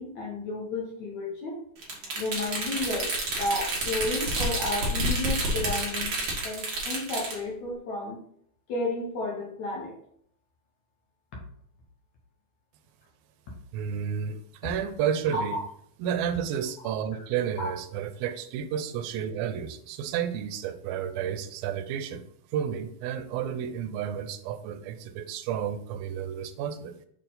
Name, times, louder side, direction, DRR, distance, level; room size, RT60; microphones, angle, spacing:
voice 1, 0.0-1.6 2.2-3.1 3.4-6.1 6.4-8.2 8.7-10.0 15.3-15.6 17.6-17.7, left 2 dB, 65° left, -1 dB, 2.1 m, -32 dB
sound 1, 1.8-7.4, right 1 dB, 50° right, 1.5 m, -29 dB
voice 2, 13.7-15.6 16.0-22.2 22.5-27.0, right 8 dB, 85° right, 10 dB, 2.4 m, -31 dB
6.7 x 4.4 x 3.9 m, 0.66 s
omnidirectional pair, 4.2 m